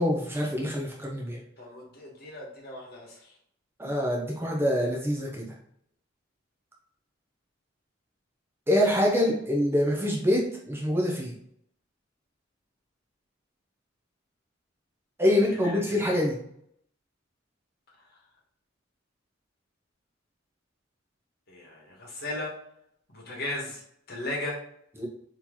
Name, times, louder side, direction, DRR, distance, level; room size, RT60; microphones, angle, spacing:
voice 1, 0.0-1.4 3.8-5.5 8.7-11.3 15.2-16.4 25.0-25.1, left 1 dB, 10° right, -1 dB, 0.7 m, -25 dB
voice 2, 1.6-3.3 15.5-16.1 21.5-22.5 23.1-23.8 24.1-24.6, left 2 dB, 50° left, -2 dB, 1.5 m, -36 dB
4.4 x 2.9 x 3.7 m, 0.69 s
head